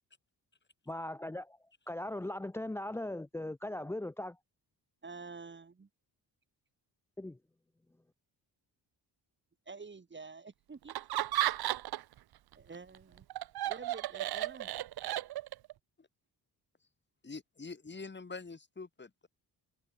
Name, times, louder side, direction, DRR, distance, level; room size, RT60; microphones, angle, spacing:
voice 1, 0.9-1.6 1.9-4.4 7.2-7.4, left 1 dB, 5° left, 0.4 m, -39 dB
voice 2, 5.0-5.9 9.7-11.2 12.6-13.3 13.6-14.7, right 4 dB, 30° right, 2.2 m, -49 dB
Laughter, 10.9-12.2 12.5-15.7, right 14 dB, 65° right, 0.7 m, -34 dB
voice 3, 17.2-19.3, left 4 dB, 25° left, 6.7 m, -45 dB
cardioid pair, 125°, 40 cm